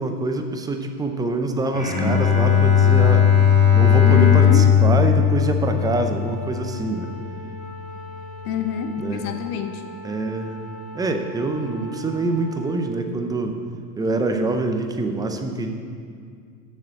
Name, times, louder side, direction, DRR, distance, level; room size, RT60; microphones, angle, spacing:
voice 1, 0.0-3.2 3.7-7.1 9.0-9.2 10.0-10.7 10.9-13.6 14.0-15.7, right 2 dB, 10° right, 6 dB, 0.5 m, -25 dB
Bowed string instrument, 1.7-7.0, left 8 dB, 15° left, 1.5 m, -17 dB
Wind instrument woodwind instrument, 3.8-13.0, equal, 40° left, 2.0 m, -40 dB
voice 2, 4.0-4.7 8.4-9.8, left 7 dB, 65° left, 7 dB, 1.1 m, -26 dB
7.0 x 6.5 x 7.4 m, 2.2 s
hypercardioid pair, 100°, 48 cm